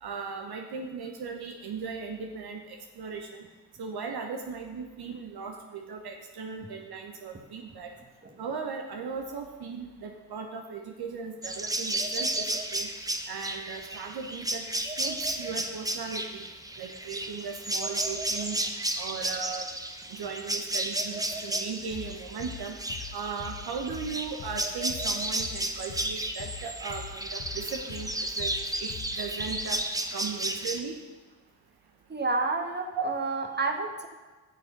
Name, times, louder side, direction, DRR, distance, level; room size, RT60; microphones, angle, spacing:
voice 1, 0.0-3.4 3.8-7.9 8.4-12.4 12.7-12.9 13.3-16.4 16.8-18.6 19.0-19.7 20.1-22.7 23.1-28.5 28.8-29.8 30.1-30.9 33.0-33.1, right 5 dB, 60° right, 3 dB, 1.1 m, -37 dB
sound 1, 11.4-30.8, right 1 dB, 10° right, 0.9 m, -33 dB
sound 2, 21.9-29.9, left 8 dB, 50° left, 0.9 m, -43 dB
voice 2, 32.1-34.1, right 3 dB, 25° right, 4 dB, 1.5 m, -30 dB
8.6 x 6.6 x 5.9 m, 1.2 s
supercardioid pair, 50°, 42 cm